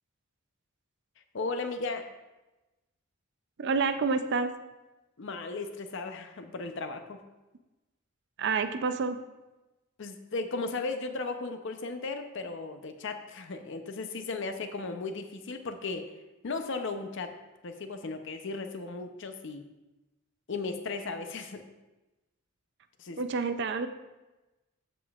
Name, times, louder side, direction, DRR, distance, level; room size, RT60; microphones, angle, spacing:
voice 1, 1.3-2.1 5.2-7.2 10.0-16.1 16.4-17.3 17.6-19.6 20.5-21.6 23.0-23.2, left 3 dB, 55° left, 7 dB, 0.6 m, -36 dB
voice 2, 3.6-4.5 8.4-9.2 23.2-23.9, right 4 dB, 50° right, 9 dB, 0.5 m, -28 dB
13.5 x 5.2 x 2.4 m, 1.1 s
head